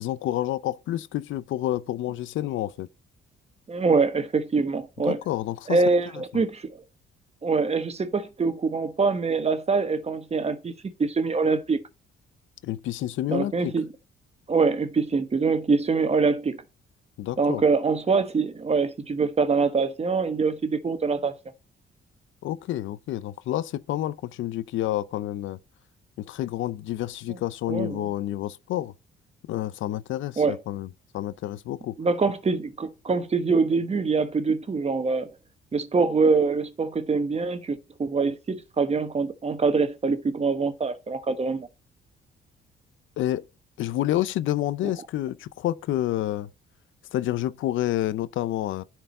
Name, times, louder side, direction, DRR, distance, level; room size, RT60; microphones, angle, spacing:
voice 1, 0.0-2.9 5.1-5.8 12.6-13.7 17.2-17.6 22.4-25.6 26.2-28.9 29.5-30.9 31.1-32.0 43.2-43.4 43.8-46.5 47.1-48.8, left 13 dB, 80° left, 0.6 m, -29 dB
voice 2, 3.7-5.2 5.7-6.8 7.4-10.7 11.0-11.8 13.3-13.9 14.5-16.6 17.4-21.3 27.7-28.1 30.4-30.6 32.0-35.3 35.7-41.7, right 4 dB, 30° right, 1.2 m, -24 dB
10.0 x 4.7 x 4.2 m
cardioid pair, 90°, 20 cm